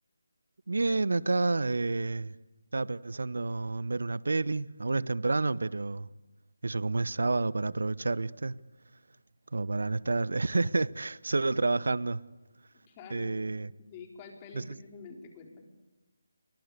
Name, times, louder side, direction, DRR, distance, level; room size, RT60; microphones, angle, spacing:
voice 1, 0.7-2.3 2.7-6.1 6.6-8.6 9.5-12.2 13.1-13.7 14.5-14.8, right 3 dB, 65° right, 0.8 m, -29 dB
voice 2, 12.9-13.4 13.8-15.6, left 5 dB, 20° left, 4.3 m, -47 dB
29.5 x 24.0 x 8.3 m
figure-of-eight pair, 155°, 0 cm